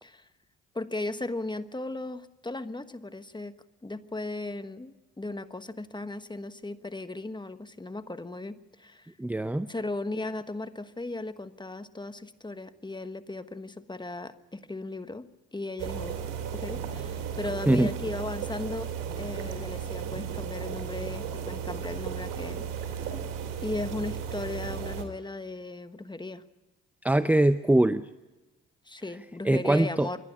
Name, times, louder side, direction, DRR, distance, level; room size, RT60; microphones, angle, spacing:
voice 1, 0.7-3.5 3.8-9.1 9.7-16.2 16.5-18.9 19.2-22.9 23.6-26.4 28.8-30.2, left 2 dB, 15° left, 11 dB, 1.2 m, -36 dB
voice 2, 9.2-9.7 17.7-17.9 27.0-28.1 29.4-30.1, right 1 dB, 5° right, 13 dB, 0.6 m, -22 dB
sound 1, 15.8-25.0, right 8 dB, 85° right, 2.7 m, -35 dB
27.5 x 11.0 x 8.5 m, 1.1 s
supercardioid pair, 60°, 32 cm